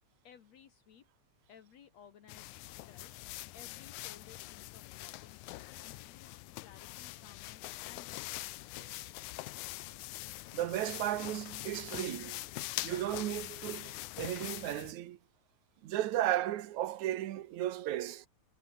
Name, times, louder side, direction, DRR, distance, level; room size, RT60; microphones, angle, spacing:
voice 1, 0.2-1.1 1.5-3.2 3.5-8.5, left 8 dB, 65° left, 2.9 m, -58 dB
sound 1, 2.3-14.9, left 18 dB, 90° left, 2.1 m, -44 dB
voice 2, 10.5-12.5 12.8-15.2 15.8-18.3, right 13 dB, 80° right, 2.4 m, -35 dB
omnidirectional pair, 3.3 m